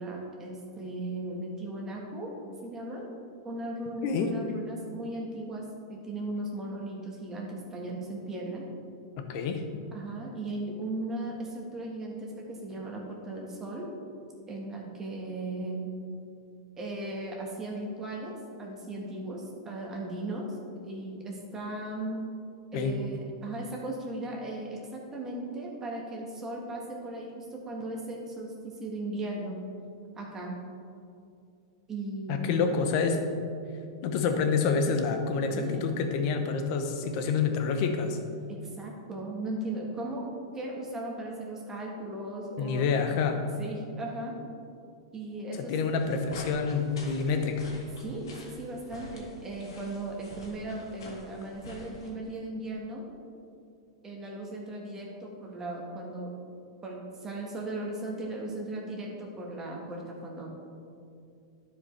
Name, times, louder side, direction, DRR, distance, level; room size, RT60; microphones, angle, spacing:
voice 1, 0.0-2.3 2.6-3.1 3.4-8.7 9.9-13.9 14.5-15.9 16.8-20.5 20.8-22.2 22.7-29.6 30.1-30.6 31.9-32.8 35.5-35.9 38.5-40.2 40.5-42.9 43.6-44.4 45.1-45.7 48.0-53.0 54.0-56.3 56.8-60.5, right 2 dB, 20° right, -1 dB, 1.5 m, -37 dB
voice 2, 4.0-4.3 9.2-9.6 22.7-22.9 32.3-33.3 34.0-38.2 42.6-43.4 45.6-47.7, left 5 dB, 50° left, 6 dB, 0.9 m, -28 dB
sound 1, 45.9-52.1, left 1 dB, 85° left, 1.9 m, -47 dB
11.5 x 5.1 x 3.4 m, 2.5 s
hypercardioid pair, 130°, 2 cm